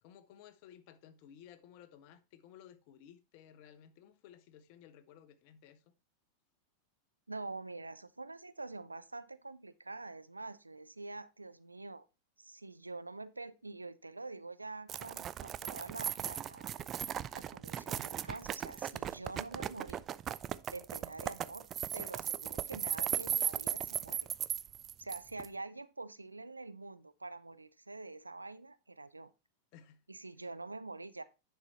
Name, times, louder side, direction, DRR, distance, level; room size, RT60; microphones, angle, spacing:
voice 1, 0.0-5.9 22.0-22.3 22.7-22.8 29.7-30.0, left 9 dB, 45° left, 0.9 m, -57 dB
voice 2, 7.3-12.1 12.4-16.8 17.3-20.0 20.7-21.7 21.9-24.3 25.0-29.3 30.1-31.2, right 3 dB, 80° right, 0.5 m, -46 dB
sound 1, 14.9-25.5, right 10 dB, 30° right, 0.3 m, -37 dB
10.0 x 4.6 x 4.1 m
figure-of-eight pair, 90°, 0 cm